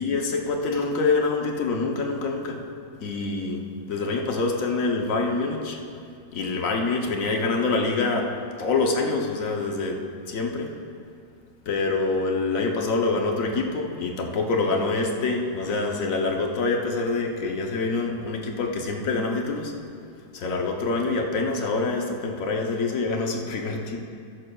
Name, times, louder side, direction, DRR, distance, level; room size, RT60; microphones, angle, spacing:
voice 1, 0.0-2.6 3.0-3.6 3.9-5.8 6.3-8.3 8.6-10.0 10.3-10.7 11.7-19.7 20.3-24.0, left 3 dB, 65° left, 2 dB, 0.8 m, -26 dB
14.0 x 11.0 x 2.3 m, 2.4 s
omnidirectional pair, 2.3 m